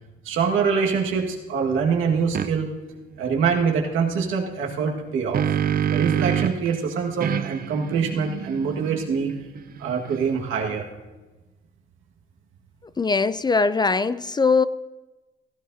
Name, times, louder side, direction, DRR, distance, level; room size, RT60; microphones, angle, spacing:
voice 1, 0.2-2.7 3.2-5.4 5.9-9.3 9.8-10.8, right 6 dB, 80° right, 0 dB, 1.7 m, -24 dB
sound 1, 2.3-2.5 4.9-6.7 7.2-10.5, right 9 dB, 50° right, 0.5 m, -27 dB
voice 2, 13.0-14.6, left 4 dB, 20° left, 15 dB, 0.3 m, -21 dB
17.0 x 14.0 x 2.7 m, 1.2 s
cardioid pair, 90°, 20 cm